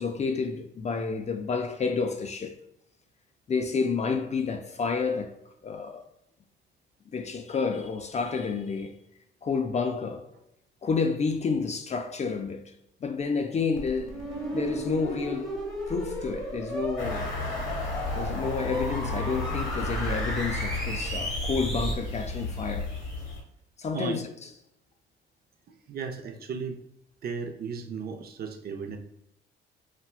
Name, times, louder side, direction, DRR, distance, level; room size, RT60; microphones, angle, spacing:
voice 1, 0.0-2.6 3.5-5.3 5.6-6.0 7.1-8.9 9.4-10.2 10.8-12.6 13.0-14.2 14.5-15.5 15.9-17.3 18.1-22.9 23.8-24.2, left 5 dB, 35° left, 0.4 m, -29 dB
sound 1, 13.8-21.9, equal, ahead, 1.0 m, -34 dB
sound 2, 17.0-23.4, left 3 dB, 85° left, 1.1 m, -34 dB
voice 2, 25.7-26.8 27.2-29.0, right 5 dB, 50° right, 0.5 m, -35 dB
4.1 x 2.2 x 2.3 m
cardioid pair, 90°, 20 cm